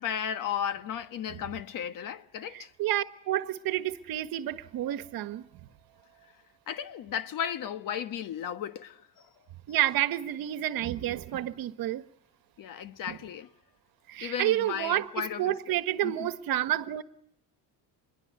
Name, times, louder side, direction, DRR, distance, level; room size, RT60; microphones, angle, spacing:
voice 1, 0.0-2.7 6.7-9.0 12.6-13.5 14.2-15.6 16.0-16.3, left 9 dB, 50° left, 1.4 m, -35 dB
voice 2, 2.5-5.5 9.7-12.1 13.1-13.2 14.1-17.0, right 13 dB, 55° right, 1.4 m, -30 dB
26.5 x 22.5 x 9.5 m
cardioid pair, 175°, 43 cm